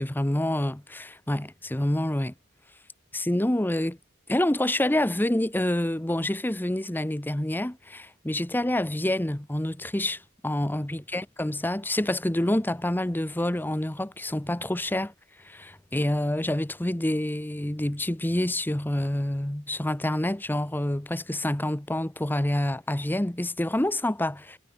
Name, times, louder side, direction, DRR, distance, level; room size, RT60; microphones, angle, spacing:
voice 1, 0.0-2.3 3.1-4.0 4.3-15.1 15.4-24.6, left 1 dB, 10° left, 0.8 m, -27 dB
head